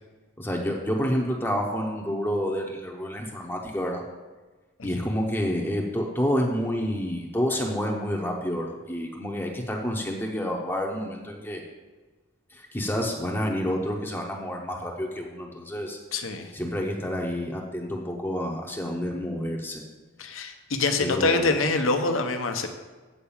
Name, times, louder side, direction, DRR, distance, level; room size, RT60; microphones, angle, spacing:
voice 1, 0.4-4.0 4.8-11.6 12.5-16.0 16.5-19.8 21.0-21.6, equal, 10° left, 0 dB, 0.7 m, -29 dB
voice 2, 16.1-16.5 20.2-22.7, left 3 dB, 80° left, 5 dB, 0.9 m, -25 dB
8.5 x 4.7 x 7.1 m, 1.3 s
head